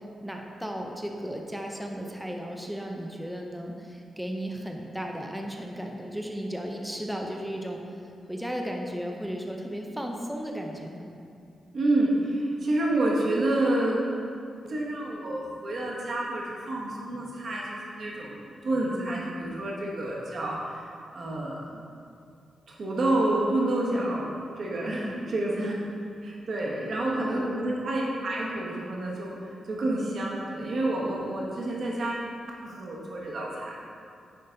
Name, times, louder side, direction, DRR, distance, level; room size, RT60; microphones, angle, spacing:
voice 1, 0.2-7.8 8.3-11.1 24.9-25.2 27.2-27.5, equal, ahead, 1 dB, 0.5 m, -35 dB
voice 2, 11.7-14.1 14.7-20.8 21.1-21.8 22.7-24.3 24.6-25.7 26.2-29.3 29.7-32.3 32.5-33.7, right 1 dB, 50° right, -3 dB, 1.3 m, -28 dB
9.4 x 3.9 x 3.9 m, 2.5 s
wide cardioid pair, 140°, 0 cm